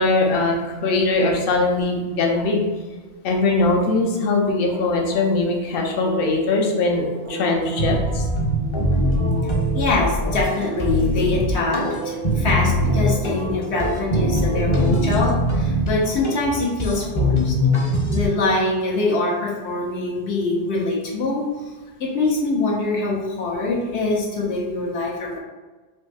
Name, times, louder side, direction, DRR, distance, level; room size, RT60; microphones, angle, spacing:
voice 1, 0.0-2.6 3.2-8.2 9.4-9.5 18.9-19.1 20.4-20.5 25.2-25.4, left 3 dB, 60° left, 1 dB, 0.8 m, -21 dB
sound 1, 4.6-16.0, right 2 dB, 85° right, 0.9 m, -34 dB
sound 2, 7.8-18.3, equal, 35° left, 0.5 m, -22 dB
voice 2, 9.7-21.5 22.0-25.4, left 2 dB, 80° left, -3 dB, 1.1 m, -24 dB
4.4 x 2.6 x 2.2 m, 1.3 s
omnidirectional pair, 1.1 m